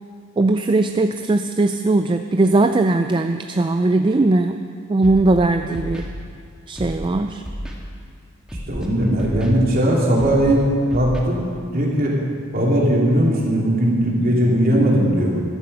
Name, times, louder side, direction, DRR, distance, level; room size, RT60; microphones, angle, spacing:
voice 1, 0.4-4.6 4.9-6.0 6.7-7.4, right 2 dB, 25° right, 7 dB, 0.3 m, -19 dB
Scratching (performance technique), 5.0-5.4 5.7-6.1 6.7-7.1 7.4-7.7 8.5-8.9 9.2-9.5 10.2-10.5 10.9-11.2, equal, 5° right, 1.5 m, -31 dB
voice 2, 8.7-10.6 10.9-11.4 11.7-12.1 12.5-15.4, right 1 dB, 45° right, -3 dB, 2.9 m, -18 dB
14.5 x 12.5 x 5.5 m, 2.3 s
head